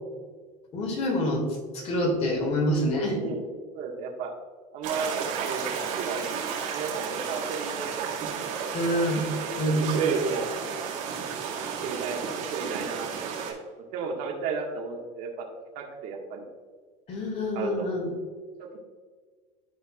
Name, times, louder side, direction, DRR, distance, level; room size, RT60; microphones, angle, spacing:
voice 1, 0.7-1.5 1.7-3.3 8.7-9.3 9.6-10.0 17.1-18.1, equal, 40° left, 1 dB, 2.2 m, -26 dB
voice 2, 3.1-3.5 3.7-4.3 4.7-6.3 6.7-8.1 8.4-8.7 10.2-10.5 11.8-13.6 13.9-15.5 15.7-16.4 17.5-17.9 18.6-18.8, right 5 dB, 65° right, 0 dB, 1.7 m, -34 dB
sound 1, 4.8-13.5, right 6 dB, 90° right, 2.1 m, -31 dB
13.5 x 4.6 x 2.4 m, 1.5 s
supercardioid pair, 120°, 17 cm